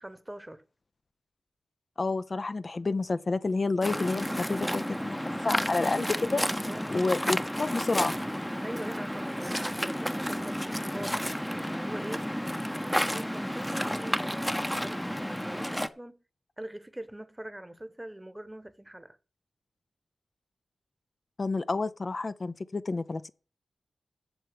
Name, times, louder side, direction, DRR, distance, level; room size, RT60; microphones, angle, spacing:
voice 1, 0.0-0.6 5.9-6.4 6.7-7.0 8.6-12.3 12.8-16.2 16.6-19.2, right 1 dB, 15° right, 1.1 m, -43 dB
voice 2, 2.0-6.4 6.9-8.1 21.4-23.3, left 3 dB, 45° left, 0.6 m, -29 dB
Waves surf, 3.8-15.9, equal, 5° left, 0.8 m, -31 dB
7.9 x 6.9 x 7.7 m
cardioid pair, 55°, 0 cm